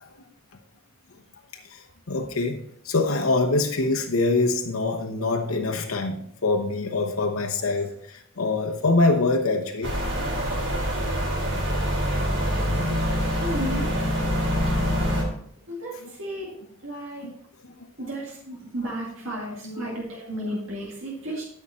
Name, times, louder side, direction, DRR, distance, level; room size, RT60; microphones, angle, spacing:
voice 1, 2.1-9.9 14.6-14.7 15.0-15.1 17.2-17.3 19.3-19.9, left 3 dB, 90° left, 3 dB, 0.9 m, -25 dB
sound 1, 9.8-15.2, equal, 55° right, 3.7 m, -25 dB
voice 2, 13.3-13.9 15.7-16.5 16.8-17.3 18.0-21.4, right 1 dB, 75° right, -4 dB, 2.3 m, -33 dB
12.5 x 5.7 x 4.3 m, 0.67 s
head